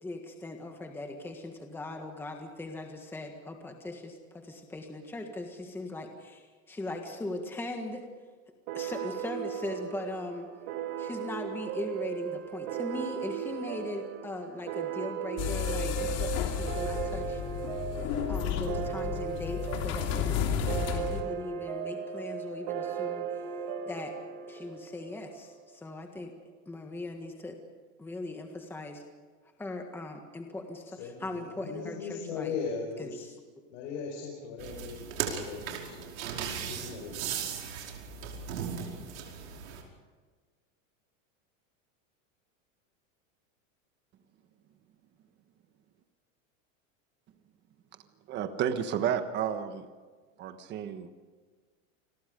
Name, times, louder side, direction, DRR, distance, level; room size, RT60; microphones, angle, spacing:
voice 1, 0.0-8.0 8.7-10.5 11.0-17.4 18.3-23.4 23.9-24.1 24.5-26.3 26.6-27.6 28.0-29.0 29.6-32.6 33.0-33.3, left 2 dB, 5° left, 3 dB, 1.6 m, -39 dB
sound 1, 8.7-25.8, right 9 dB, 50° right, 2.7 m, -37 dB
sound 2, 15.4-21.2, left 8 dB, 40° left, 3.1 m, -32 dB
voice 2, 31.0-33.2 33.7-36.1 36.6-37.2, left 5 dB, 55° left, 1 dB, 5.3 m, -38 dB
sound 3, 34.6-39.8, right 7 dB, 90° right, 5.3 m, -37 dB
voice 3, 48.3-49.9 50.4-51.1, right 9 dB, 25° right, 9 dB, 1.3 m, -31 dB
29.0 x 22.0 x 5.3 m, 1.5 s
supercardioid pair, 160°, 40 cm